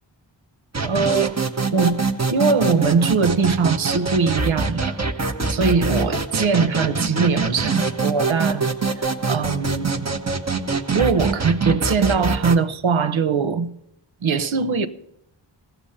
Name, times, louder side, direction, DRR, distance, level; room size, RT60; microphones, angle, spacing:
sound 1, 0.7-12.6, right 4 dB, 35° right, 1.0 m, -24 dB
voice 1, 0.8-1.4 1.7-2.0 2.3-5.0 5.5-8.7 9.0-10.1 10.9-13.7 14.2-14.9, right 5 dB, 85° right, 0.9 m, -21 dB
16.0 x 7.0 x 8.5 m
wide cardioid pair, 85°, 46 cm